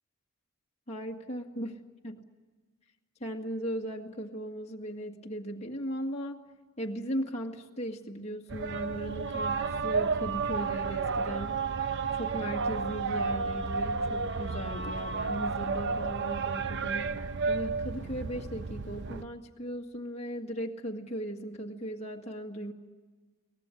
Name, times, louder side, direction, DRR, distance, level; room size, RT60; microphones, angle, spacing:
voice 1, 0.9-1.7 2.0-2.2 3.2-6.4 6.8-11.6 12.1-17.1 17.5-22.7, equal, 30° left, -1 dB, 1.9 m, -37 dB
sound 1, 8.5-19.2, right 4 dB, 60° right, 0.8 m, -32 dB
23.5 x 18.5 x 9.8 m, 1.4 s
head